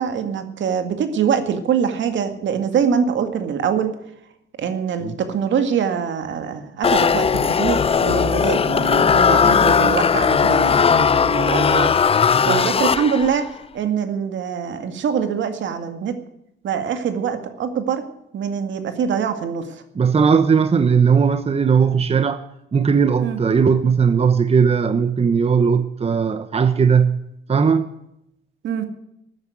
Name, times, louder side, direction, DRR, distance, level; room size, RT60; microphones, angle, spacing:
voice 1, 0.0-4.0 4.6-11.9 12.5-16.2 16.6-18.0 18.3-19.8 23.2-23.4 28.6-28.9, right 7 dB, 70° right, 2.1 m, -24 dB
sound 1, 6.8-13.5, left 6 dB, 30° left, 0.5 m, -17 dB
voice 2, 19.9-22.4 22.7-27.2 27.5-27.9, right 6 dB, 30° right, 1.0 m, -17 dB
14.0 x 9.7 x 9.3 m
cardioid pair, 90°, 20 cm